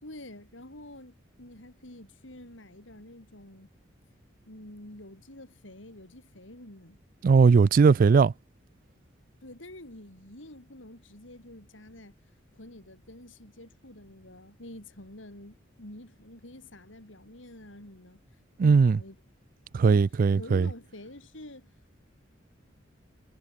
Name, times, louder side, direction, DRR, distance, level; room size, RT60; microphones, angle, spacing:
voice 1, 0.0-3.7 4.5-7.0 9.4-12.1 12.5-18.2 18.6-19.2 19.8-21.7, left 1 dB, 75° left, 5.8 m, -47 dB
voice 2, 7.2-8.3 18.6-19.0 19.7-20.7, right 5 dB, 45° right, 0.3 m, -19 dB
head